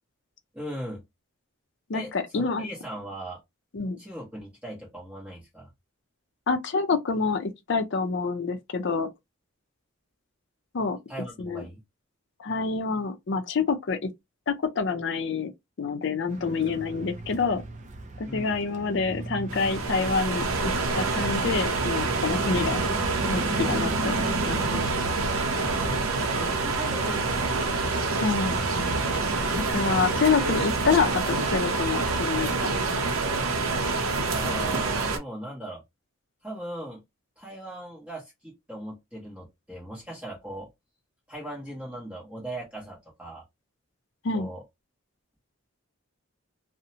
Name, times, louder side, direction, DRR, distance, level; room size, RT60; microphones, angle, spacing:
voice 1, 0.5-1.0 1.9-3.4 4.0-5.7 11.1-11.8 18.3-18.6 25.5-27.6 34.2-35.8 36.4-37.0 37.4-40.7 41.3-43.4 44.3-44.6, right 1 dB, 5° right, 0.9 m, -39 dB
voice 2, 1.9-2.7 3.7-4.0 6.5-9.1 10.7-11.0 11.4-11.6 12.4-14.1 14.5-15.5 15.8-17.6 18.2-22.8 23.2-24.9 28.2-28.6 29.6-33.0 44.2-44.5, left 4 dB, 55° left, 0.5 m, -27 dB
sound 1, 16.3-30.5, right 1 dB, 35° right, 0.4 m, -37 dB
sound 2, 19.5-35.2, right 3 dB, 85° right, 0.6 m, -27 dB
2.6 x 2.1 x 2.7 m
head